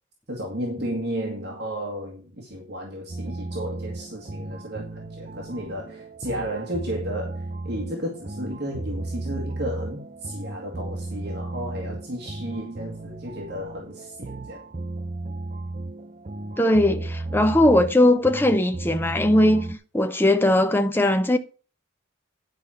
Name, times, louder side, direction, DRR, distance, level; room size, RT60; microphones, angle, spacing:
voice 1, 0.3-14.7, equal, 55° right, 1.9 m, -33 dB
sound 1, 3.1-19.8, right 2 dB, 35° right, 0.5 m, -35 dB
voice 2, 16.6-21.4, left 1 dB, 10° left, 0.6 m, -19 dB
10.5 x 5.0 x 5.9 m
head